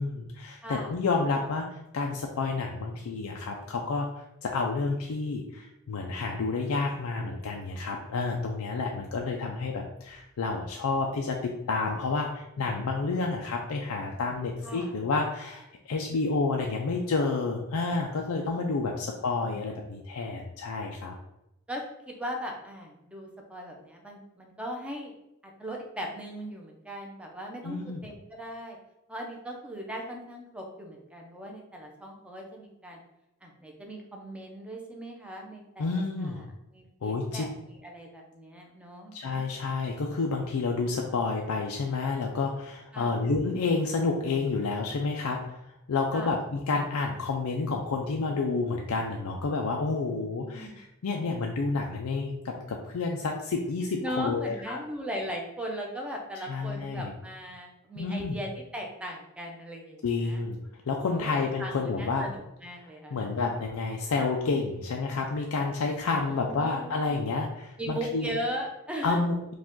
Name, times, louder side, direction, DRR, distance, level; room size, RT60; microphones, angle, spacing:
voice 1, 0.0-1.7 1.9-21.1 27.6-28.0 35.8-36.5 37.0-37.4 39.1-45.6 45.9-54.8 56.5-57.1 58.0-58.4 60.0-60.6 60.9-62.3 62.8-68.3 69.0-69.5, left 3 dB, 85° left, 1 dB, 0.5 m, -30 dB
voice 2, 0.6-0.9 14.6-14.9 19.3-19.9 21.7-25.1 25.4-28.8 29.1-33.0 33.4-36.4 36.7-39.1 42.9-43.2 46.1-46.3 50.4-50.8 54.0-60.4 61.0-63.3 66.3-67.3 67.8-69.2, equal, 5° right, 0 dB, 0.7 m, -38 dB
4.8 x 2.4 x 3.7 m, 0.88 s
head